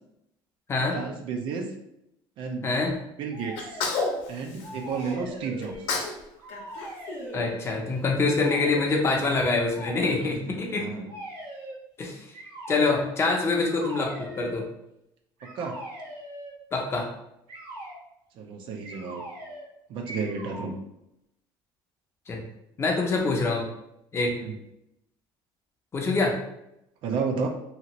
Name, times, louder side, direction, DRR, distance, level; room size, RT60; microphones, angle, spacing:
voice 1, 0.9-1.7 2.4-2.7 3.2-3.8 4.3-5.7 10.2-11.1 15.4-15.8 18.4-19.2 19.9-20.7 24.3-24.6 27.0-27.5, right 5 dB, 60° right, 4 dB, 0.5 m, -32 dB
sound 1, 3.3-4.2 4.6-6.1 6.4-7.7 8.4-8.9 9.7-10.4 11.1-11.8 12.3-13.1 13.6-14.6 15.4-16.6 17.5-18.0 18.8-19.7 20.0-20.7, right 1 dB, 85° right, 1.1 m, -41 dB
Sneeze, 3.6-5.2 5.6-6.2 6.5-7.9, left 4 dB, 80° left, 0.7 m, -32 dB
voice 2, 7.3-10.9 12.0-12.2 12.7-14.6 16.7-17.1 22.3-22.4 22.8-23.7 24.1-24.3 25.9-26.4, left 3 dB, 25° left, 0 dB, 0.6 m, -25 dB
2.8 x 2.5 x 3.0 m, 0.82 s
cardioid pair, 140°, 10 cm